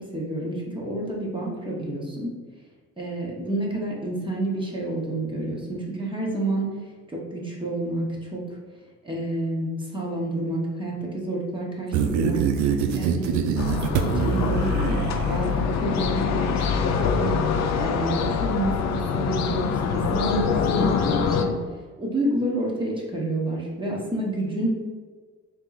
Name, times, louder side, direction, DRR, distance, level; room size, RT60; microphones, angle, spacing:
voice 1, 0.1-2.3 3.0-6.7 7.1-8.0 8.3-8.6 9.0-12.4 12.9-13.4 14.0-17.4 17.8-21.5 22.0-24.7, right 1 dB, 15° right, -4 dB, 1.1 m, -29 dB
sound 1, 11.9-15.6, right 6 dB, 70° right, 0.5 m, -24 dB
sound 2, 13.6-21.4, left 6 dB, 60° left, 0.5 m, -25 dB
3.6 x 3.0 x 3.9 m, 1.5 s
cardioid pair, 95°, 30 cm